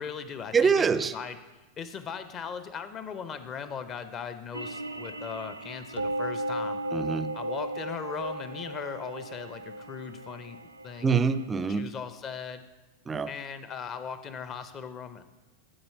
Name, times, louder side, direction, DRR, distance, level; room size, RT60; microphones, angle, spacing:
voice 1, 0.0-0.9 1.1-1.4 1.8-6.8 7.3-10.6 10.8-11.1 11.7-12.6 13.3-15.2, left 6 dB, 30° left, 11 dB, 0.6 m, -38 dB
voice 2, 0.5-1.1 6.9-7.3 11.0-11.9 13.1-13.3, right 5 dB, 20° right, 13 dB, 0.4 m, -25 dB
sound 1, 4.5-11.4, right 1 dB, 85° right, 0.4 m, -36 dB
11.5 x 4.3 x 5.5 m, 1.2 s
figure-of-eight pair, 90°, 0 cm